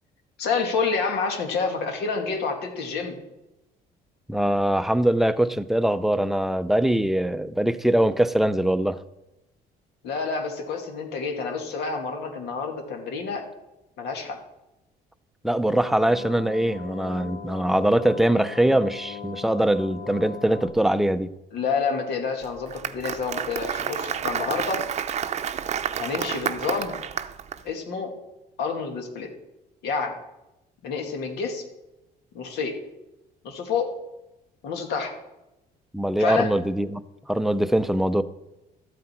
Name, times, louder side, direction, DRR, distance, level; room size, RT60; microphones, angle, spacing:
voice 1, 0.4-3.2 10.0-13.5 14.0-14.4 21.5-24.8 26.0-27.0 27.6-28.1 28.6-29.3 29.8-30.2 30.8-31.6 32.3-32.7 33.4-33.9 34.6-35.1 36.2-36.5, left 5 dB, 80° left, 3 dB, 2.2 m, -28 dB
voice 2, 4.3-9.0 15.4-21.3 35.9-37.0 37.3-38.2, right 1 dB, ahead, 12 dB, 0.5 m, -22 dB
sound 1, 15.7-20.7, left 7 dB, 60° left, 0.9 m, -39 dB
Applause, 22.4-27.6, right 8 dB, 40° right, 0.6 m, -30 dB
13.5 x 7.8 x 4.4 m, 0.94 s
cardioid pair, 110°, 17 cm